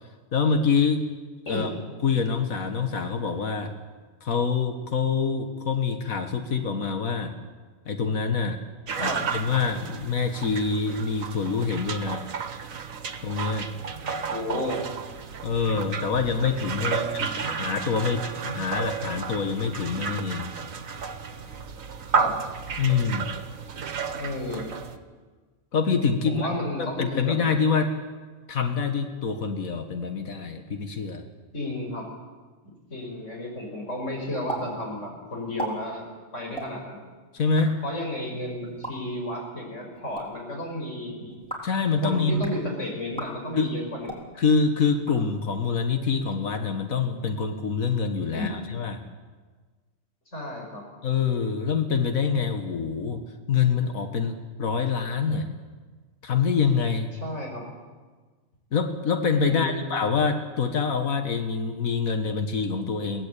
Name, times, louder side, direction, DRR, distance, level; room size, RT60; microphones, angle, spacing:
voice 1, 0.3-1.0 1.5-1.7 2.0-3.7 4.2-7.3 7.9-8.6 9.0-12.2 13.2-13.7 15.4-20.5 22.8-23.3 25.7-26.5 26.8-27.9 28.5-31.2 37.3-37.8 41.6-42.4 43.6-43.7 44.4-49.0 51.0-53.2 53.5-55.5 56.2-57.1 58.7-63.3, left 5 dB, 80° left, 6 dB, 1.9 m, -25 dB
sound 1, 8.9-25.0, right 5 dB, 75° right, 1.6 m, -32 dB
voice 2, 14.3-14.8 16.8-17.1 22.1-22.4 24.1-24.7 26.3-27.4 31.5-32.1 32.9-36.1 36.3-37.0 37.8-41.4 42.0-44.2 48.3-48.5 50.3-50.8 57.2-57.6 59.5-59.9, left 1 dB, 60° left, 0 dB, 5.8 m, -32 dB
sound 2, 34.5-34.6 34.9-35.0 35.4-35.7 36.5-36.7 37.4-37.7 38.7-38.9 39.9-40.2 41.3-41.7 42.3-42.6 43.1-43.3 44.0-44.2 44.9-45.6, right 2 dB, 5° left, 3.6 m, -36 dB
22.5 x 17.0 x 8.4 m, 1.4 s
omnidirectional pair, 1.4 m